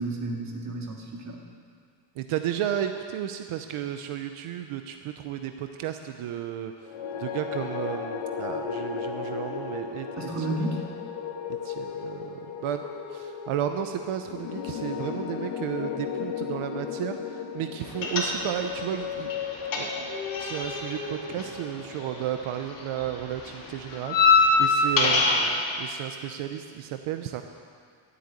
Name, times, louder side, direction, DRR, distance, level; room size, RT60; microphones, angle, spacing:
voice 1, 0.0-1.4 10.2-10.8, right 2 dB, 35° right, -1 dB, 2.2 m, -32 dB
voice 2, 2.2-6.7 7.2-10.1 10.5-10.7 11.6-12.9 13.1-19.3 19.7-20.1 20.4-27.4, right 10 dB, 80° right, 7 dB, 0.9 m, -33 dB
sound 1, 6.8-23.1, left 7 dB, 80° left, 1.6 m, -35 dB
sound 2, 18.0-18.8 19.0-22.4 22.7-25.6, left 3 dB, 40° left, 2.8 m, -24 dB
12.5 x 8.3 x 9.6 m, 2.1 s
cardioid pair, 150°, 49 cm